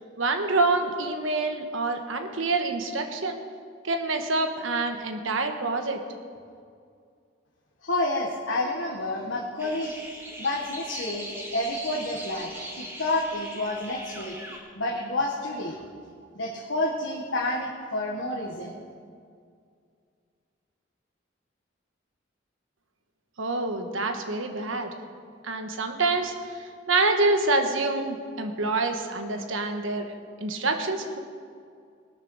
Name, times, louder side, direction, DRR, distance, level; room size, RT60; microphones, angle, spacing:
voice 1, 0.2-3.4 3.8-6.0 23.4-24.9 25.4-30.1 30.4-31.2, right 3 dB, 85° right, 5 dB, 1.3 m, -26 dB
voice 2, 7.8-10.0 10.4-14.4 14.7-15.8 16.3-18.8, left 2 dB, 75° left, -3 dB, 1.5 m, -29 dB
sound 1, 9.6-14.6, equal, 10° right, 1.7 m, -39 dB
19.5 x 6.8 x 6.4 m, 2.2 s
head